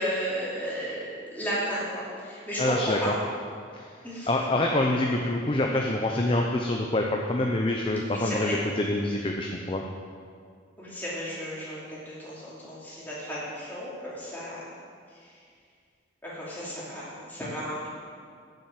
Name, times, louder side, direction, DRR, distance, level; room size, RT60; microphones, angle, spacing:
voice 1, 0.0-3.1 4.0-4.3 8.0-8.6 10.8-14.6 15.2-15.3 16.2-17.9, equal, 10° left, -8 dB, 2.9 m, -34 dB
voice 2, 2.6-3.1 3.7-3.8 4.3-9.8, left 1 dB, 25° left, 1 dB, 0.6 m, -26 dB
8.0 x 7.1 x 7.5 m, 2.2 s
head